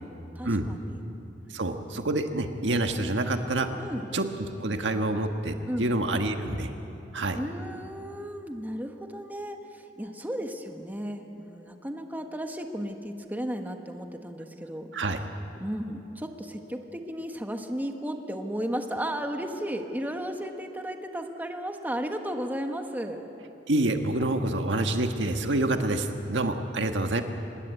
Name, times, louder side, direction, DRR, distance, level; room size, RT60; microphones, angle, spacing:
voice 1, 0.3-1.0 3.8-4.1 5.7-5.9 7.3-14.9 15.6-23.2, equal, 10° right, 4 dB, 1.4 m, -34 dB
voice 2, 1.5-3.7 4.1-6.7 7.1-7.4 14.9-15.2 23.7-27.2, right 2 dB, 80° right, 5 dB, 1.6 m, -27 dB
26.0 x 20.5 x 8.3 m, 2.9 s
head